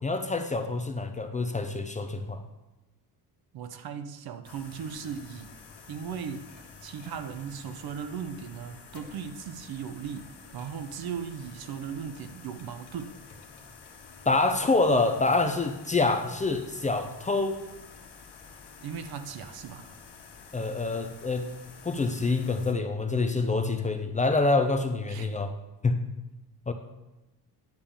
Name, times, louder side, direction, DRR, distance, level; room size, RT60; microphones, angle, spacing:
voice 1, 0.0-2.4 14.3-17.6 20.5-21.5 21.8-25.5 25.8-26.0 26.7-26.8, left 3 dB, 20° left, 6 dB, 0.5 m, -26 dB
voice 2, 3.5-5.5 5.9-6.5 6.8-13.2 18.8-19.9 25.1-25.3, right 7 dB, 60° right, 9 dB, 0.8 m, -37 dB
sound 1, 4.4-22.7, left 5 dB, 70° left, 1.4 m, -49 dB
10.5 x 3.7 x 7.1 m, 1.0 s
cardioid pair, 130°, 42 cm